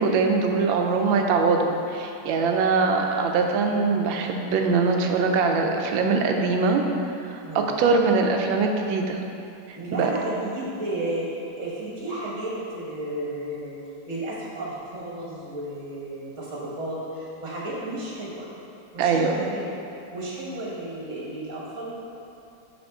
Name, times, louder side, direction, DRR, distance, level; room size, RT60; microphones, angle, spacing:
voice 1, 0.0-6.8 7.2-9.2 9.7-10.2 19.0-19.3, right 4 dB, 90° right, 3 dB, 1.4 m, -22 dB
voice 2, 9.7-13.8 14.1-18.5 18.9-19.7 20.1-21.9, right 1 dB, 45° right, -5 dB, 1.5 m, -33 dB
6.1 x 5.8 x 3.5 m, 2.7 s
omnidirectional pair, 2.1 m